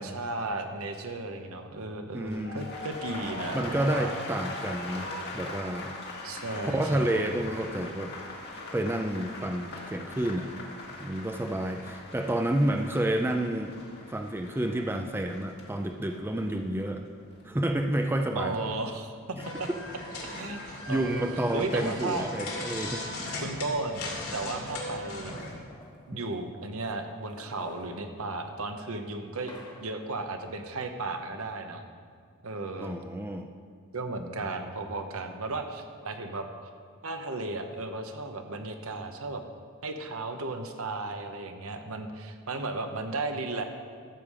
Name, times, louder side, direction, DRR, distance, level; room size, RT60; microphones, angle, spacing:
voice 1, 0.0-4.2 6.2-7.3 18.3-19.7 20.2-21.2 21.5-22.3 23.4-24.0 24.3-25.3 26.1-29.5 29.8-31.8 32.4-32.9 33.9-36.5 37.0-39.4 39.8-43.6, right 2 dB, 70° right, 6 dB, 1.0 m, -35 dB
voice 2, 2.1-2.7 3.5-5.1 5.3-5.9 6.6-8.1 8.7-10.5 11.0-13.7 14.1-17.0 17.4-18.7 19.4-19.5 20.9-23.1 32.8-33.5, right 1 dB, 10° right, 5 dB, 0.4 m, -29 dB
sound 1, 2.2-18.2 18.5-19.0, left 2 dB, 50° left, 1.6 m, -41 dB
sound 2, 19.4-25.5, left 2 dB, 90° left, 2.6 m, -38 dB
sound 3, 20.1-22.3 23.3-23.4 23.6-26.7 27.1-30.2, left 2 dB, 20° left, 1.3 m, -52 dB
13.5 x 7.4 x 4.9 m, 2.1 s
head